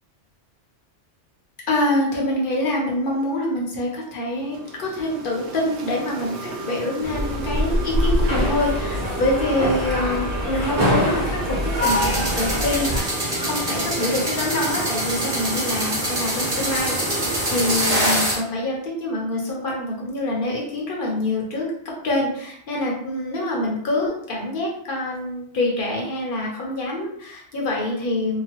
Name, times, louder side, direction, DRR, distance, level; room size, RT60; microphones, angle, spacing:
voice 1, 1.7-13.1 13.4-21.7 22.0-28.4, left 1 dB, 50° left, -2 dB, 0.9 m, -25 dB
sound 1, 4.3-18.0, right 3 dB, 70° right, 0.9 m, -33 dB
sound 2, 7.0-13.0, equal, 55° right, 1.1 m, -24 dB
sound 3, 11.8-18.3, equal, 35° right, 1.2 m, -25 dB
2.9 x 2.2 x 2.9 m, 0.69 s
omnidirectional pair, 1.2 m